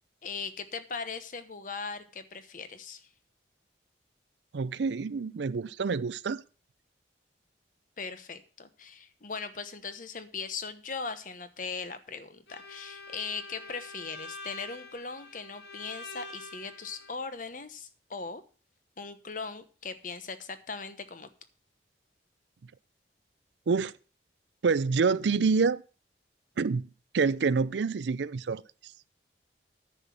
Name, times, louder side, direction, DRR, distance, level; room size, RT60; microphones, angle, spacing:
voice 1, 0.2-3.1 8.0-18.4 19.0-21.3, left 5 dB, 45° left, 1.0 m, -39 dB
voice 2, 4.5-6.4 23.7-23.9 24.6-25.8 26.6-28.6, right 4 dB, 75° right, 0.5 m, -27 dB
Bowed string instrument, 12.5-17.2, left 3 dB, 70° left, 1.3 m, -46 dB
10.0 x 5.9 x 7.3 m
head